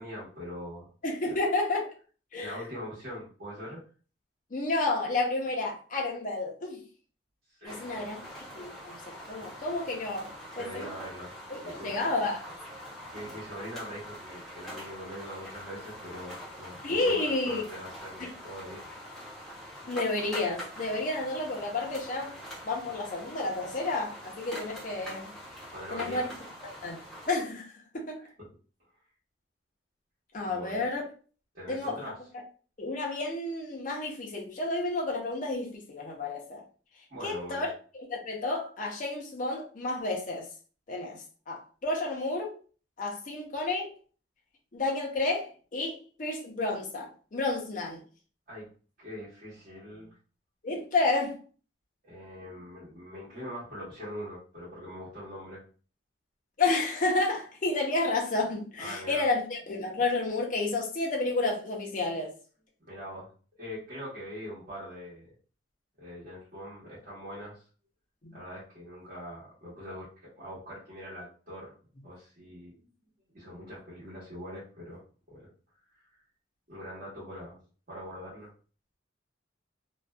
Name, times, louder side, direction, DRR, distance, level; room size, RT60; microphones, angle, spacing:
voice 1, 0.0-0.9 1.3-1.4 2.4-3.8 7.5-8.2 10.5-11.3 11.6-11.9 13.1-18.9 25.7-26.4 28.2-28.3 30.4-30.9 31.5-32.2 37.1-37.7 48.5-48.7 49.0-50.1 52.0-55.6 58.8-59.2 62.8-63.3 63.6-65.3 66.0-67.7 68.3-71.7 72.0-72.8 73.3-75.0 75.3-75.5 76.7-77.6 77.9-78.5, equal, 45° right, 1.1 m, -42 dB
voice 2, 1.0-1.9 2.3-2.6 4.5-6.8 7.6-8.2 8.5-10.9 11.5-12.5 16.8-17.6 18.2-18.3 19.9-22.4 22.6-25.3 25.9-26.3 26.8-27.7 27.9-28.2 30.3-31.0 31.7-32.0 32.8-36.6 37.2-37.7 37.9-40.5 40.9-42.6 43.0-43.9 44.7-48.0 50.6-51.4 56.6-62.3 68.2-68.4, left 2 dB, 45° left, 0.5 m, -31 dB
sound 1, 7.6-27.3, equal, 5° left, 0.7 m, -44 dB
2.5 x 2.2 x 2.2 m
head